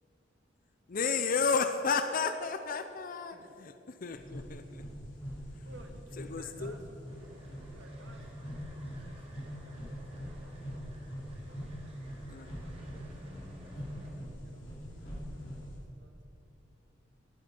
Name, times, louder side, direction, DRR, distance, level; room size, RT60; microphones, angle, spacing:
voice 1, 0.9-4.8 6.2-6.7 12.3-12.5, left 5 dB, 50° left, 9 dB, 0.6 m, -32 dB
voice 2, 3.3-3.6 3.9-4.0 5.6-8.4 8.7-10.9 11.3-14.1 14.4-16.3, right 1 dB, 75° right, 5 dB, 1.6 m, -59 dB
sound 1, 4.1-15.8, equal, 90° left, 4.0 m, -43 dB
sound 2, 7.1-14.1, equal, 35° right, 2.3 m, -54 dB
18.0 x 9.6 x 5.4 m, 2.8 s
head